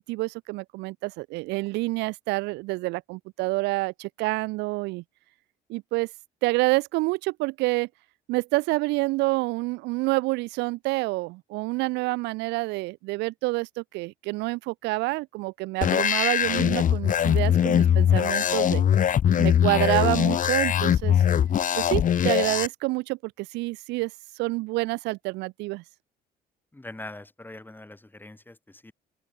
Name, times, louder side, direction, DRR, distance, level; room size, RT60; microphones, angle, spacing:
voice 1, 0.0-5.0 5.7-6.1 6.4-7.9 8.3-18.8 19.3-21.2 21.8-24.1 24.4-25.8, right 22 dB, 90° right, 0.5 m, -28 dB
sound 1, 15.8-22.7, left 9 dB, 50° left, 1.0 m, -22 dB
voice 2, 26.7-28.9, left 2 dB, 10° left, 7.6 m, -43 dB
open air
cardioid pair, 85°, 17 cm